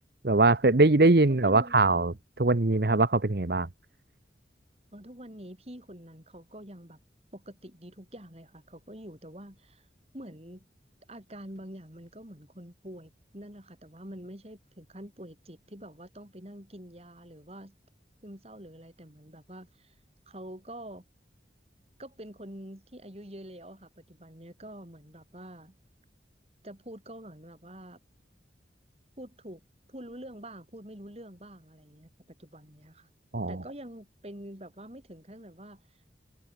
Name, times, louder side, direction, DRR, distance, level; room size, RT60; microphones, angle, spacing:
voice 1, 0.2-3.7 33.3-33.5, right 2 dB, 60° right, 1.0 m, -22 dB
voice 2, 1.3-1.9 4.9-7.0 7.3-9.9 10.1-10.7 11.1-17.7 18.2-19.9 20.3-21.0 22.0-25.8 26.6-28.0 29.2-29.6 29.9-33.1 33.5-36.0, right 1 dB, 35° right, 5.4 m, -46 dB
head